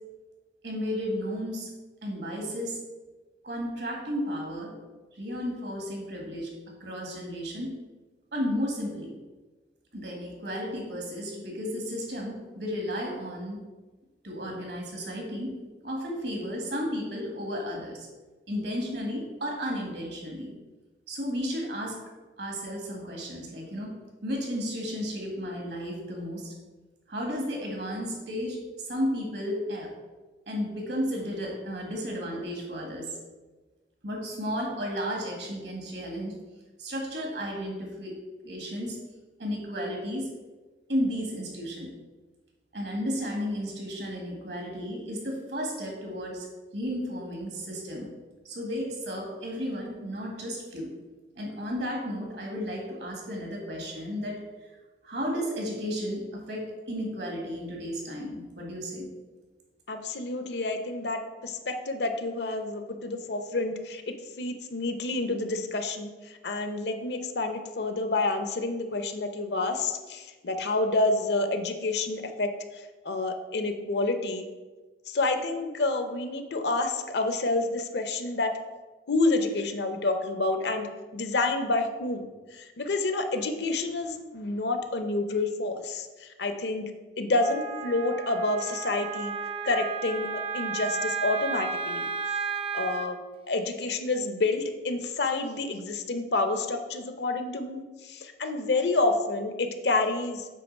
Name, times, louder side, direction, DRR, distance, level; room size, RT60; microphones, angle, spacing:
voice 1, 0.6-1.7 2.0-2.8 3.4-4.7 5.1-7.8 8.3-9.1 9.9-13.6 14.2-15.6 15.8-18.1 18.5-20.5 21.1-22.0 22.4-26.5 27.1-29.9 30.5-33.2 34.0-36.3 36.8-38.1 38.4-39.0 39.4-40.3 40.9-41.9 42.7-46.5 46.7-48.1 48.5-50.9 51.4-54.4 55.0-59.1, equal, 75° right, 0 dB, 1.7 m, -33 dB
voice 2, 59.9-64.0 64.4-66.1 66.4-74.5 75.1-78.5 79.1-80.9 81.1-86.9 87.2-89.3 89.6-90.3 90.5-92.0 92.7-93.2 93.5-100.5, left 2 dB, 75° left, 7 dB, 0.7 m, -28 dB
Wind instrument woodwind instrument, 87.4-93.1, right 5 dB, 30° right, 0.4 m, -33 dB
7.7 x 3.2 x 5.3 m, 1.2 s
head